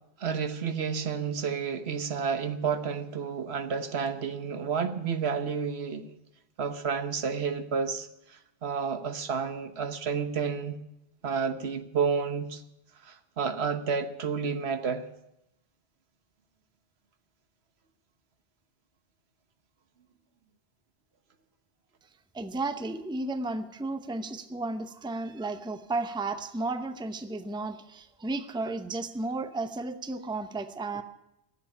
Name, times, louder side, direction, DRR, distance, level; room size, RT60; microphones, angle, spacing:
voice 1, 0.2-6.2 6.6-8.1 8.6-10.8 11.2-12.6 13.0-15.1, right 6 dB, 75° right, 9 dB, 1.3 m, -30 dB
voice 2, 22.3-31.0, right 2 dB, 5° right, 9 dB, 0.6 m, -33 dB
15.0 x 7.6 x 9.9 m, 0.84 s
omnidirectional pair, 1.1 m